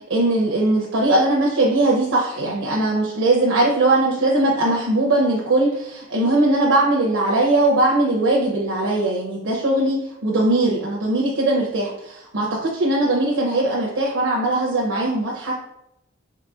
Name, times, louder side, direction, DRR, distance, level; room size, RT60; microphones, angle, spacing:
voice 1, 0.1-15.5, right 2 dB, 90° right, -4 dB, 0.7 m, -20 dB
3.9 x 3.4 x 2.3 m, 0.81 s
head